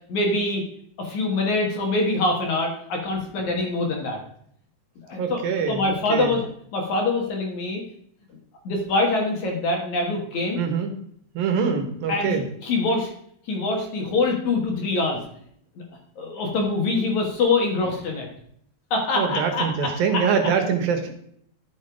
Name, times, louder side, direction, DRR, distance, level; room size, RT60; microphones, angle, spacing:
voice 1, 0.1-0.6 1.0-4.2 5.0-5.4 5.7-6.4 6.7-7.8 8.6-10.6 12.1-13.1 13.5-15.2 16.2-18.3 18.9-20.2, left 2 dB, 60° left, 1 dB, 2.4 m, -24 dB
voice 2, 5.2-6.3 10.6-10.9 11.3-12.4 19.1-21.1, right 6 dB, 70° right, 5 dB, 2.9 m, -24 dB
11.5 x 6.5 x 5.0 m, 0.68 s
omnidirectional pair, 4.5 m